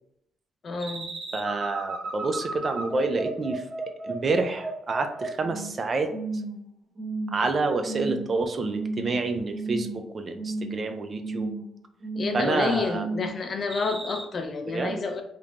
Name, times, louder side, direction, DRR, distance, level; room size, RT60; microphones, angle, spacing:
voice 1, 0.6-1.1 12.1-15.2, left 4 dB, 45° left, 6 dB, 0.4 m, -29 dB
sound 1, 0.8-5.8 6.1-6.6 6.9-7.5 7.8-8.3 8.6-9.2 9.5-10.0 10.3-10.8 11.2-11.6 12.0-12.5 12.9-13.3 13.7-14.2, right 3 dB, 60° right, 1.5 m, -33 dB
voice 2, 1.3-3.6 4.0-6.1 7.3-11.5 12.3-13.1 14.7-15.0, right 3 dB, 40° right, 7 dB, 0.3 m, -28 dB
3.0 x 2.1 x 2.4 m, 0.75 s
cardioid pair, 90°, 0 cm